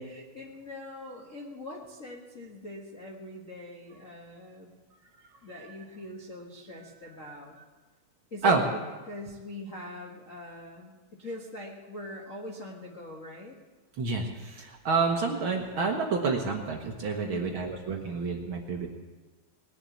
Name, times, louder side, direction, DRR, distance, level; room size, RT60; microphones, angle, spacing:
voice 1, 0.0-4.7 5.4-7.5 8.3-13.6 17.2-17.6, left 1 dB, 90° left, -1 dB, 0.6 m, -43 dB
voice 2, 14.0-18.9, right 4 dB, 75° right, 2 dB, 1.2 m, -28 dB
20.0 x 7.2 x 8.5 m, 1.3 s
omnidirectional pair, 4.1 m